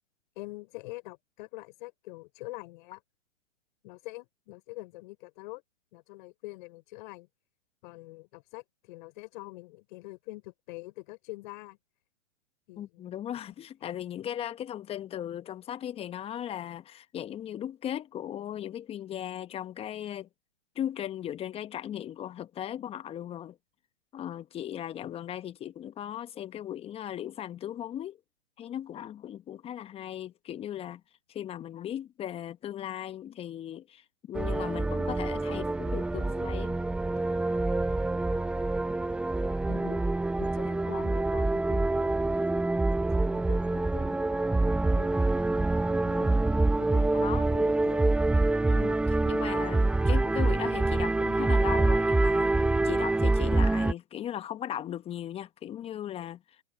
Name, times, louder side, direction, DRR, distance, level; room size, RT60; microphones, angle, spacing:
voice 1, 0.4-3.0 3.8-5.6 5.9-7.3 7.8-11.8 12.7-13.0 39.7-40.1 40.4-42.2 43.1-46.4 46.8-48.0, left 22 dB, 40° left, 4.3 m, -45 dB
voice 2, 12.8-20.3 20.7-23.6 24.1-28.2 28.6-31.0 31.3-36.8 47.2-47.4 48.7-52.5 52.8-56.6, left 11 dB, 15° left, 1.2 m, -37 dB
sound 1, 34.3-53.9, right 2 dB, 5° right, 0.8 m, -26 dB
hypercardioid pair, 125°, 37 cm